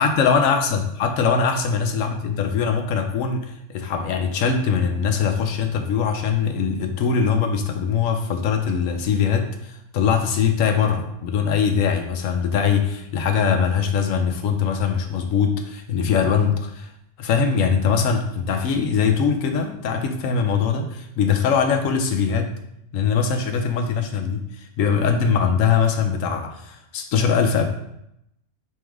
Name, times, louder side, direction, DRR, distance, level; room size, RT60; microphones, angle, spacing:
voice 1, 0.0-16.9 17.2-22.5 22.9-24.4 24.8-27.7, left 6 dB, 70° left, 6 dB, 1.0 m, -22 dB
3.6 x 3.1 x 4.6 m, 0.79 s
omnidirectional pair, 1.5 m